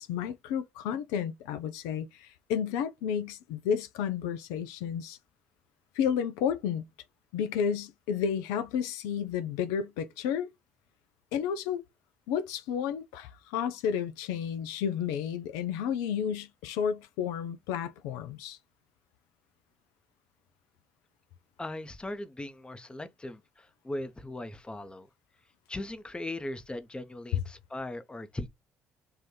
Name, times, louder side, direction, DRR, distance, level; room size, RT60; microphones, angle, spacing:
voice 1, 0.0-5.2 5.9-6.8 7.3-10.5 11.3-11.8 12.3-18.6 27.3-27.4, left 8 dB, 70° left, 0.4 m, -31 dB
voice 2, 21.6-25.1 25.7-28.5, left 1 dB, 15° left, 0.7 m, -39 dB
3.8 x 2.5 x 3.0 m
hypercardioid pair, 50°, 6 cm